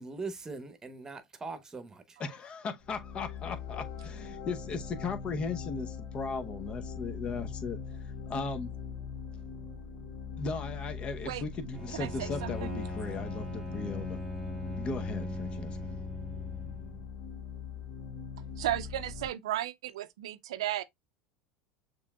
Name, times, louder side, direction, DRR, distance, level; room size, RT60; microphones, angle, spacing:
voice 1, 0.0-2.2, right 4 dB, 20° right, 1.0 m, -41 dB
voice 2, 2.2-7.8 8.3-8.7 10.4-14.2 14.8-15.9, left 4 dB, 40° left, 0.9 m, -37 dB
sound 1, 2.8-19.3, left 6 dB, 70° left, 0.8 m, -41 dB
Bowed string instrument, 11.7-17.1, equal, 5° right, 2.1 m, -40 dB
voice 3, 11.9-12.8 18.6-20.8, right 13 dB, 85° right, 0.5 m, -34 dB
6.7 x 3.1 x 2.3 m
hypercardioid pair, 95°, 3 cm